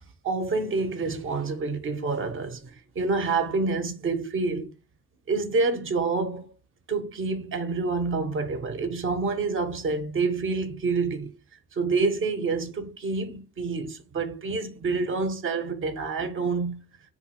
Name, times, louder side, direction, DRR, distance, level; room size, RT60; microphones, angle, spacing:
voice 1, 0.2-4.7 5.3-6.5 6.9-11.3 11.7-16.8, right 4 dB, 45° right, 0.7 m, -27 dB
3.0 x 2.5 x 2.8 m
cardioid pair, 90°, 30 cm